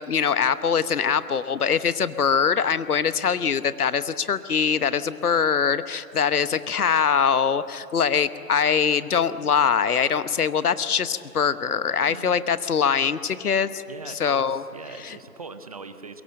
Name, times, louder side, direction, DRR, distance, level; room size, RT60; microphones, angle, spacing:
voice 1, 0.0-13.8 14.2-14.6 15.0-15.2, left 7 dB, 70° left, 14 dB, 1.1 m, -23 dB
voice 2, 12.0-12.3 13.9-16.2, right 4 dB, 25° right, 10 dB, 0.7 m, -41 dB
22.5 x 22.5 x 7.7 m, 2.8 s
hypercardioid pair, 155°, 46 cm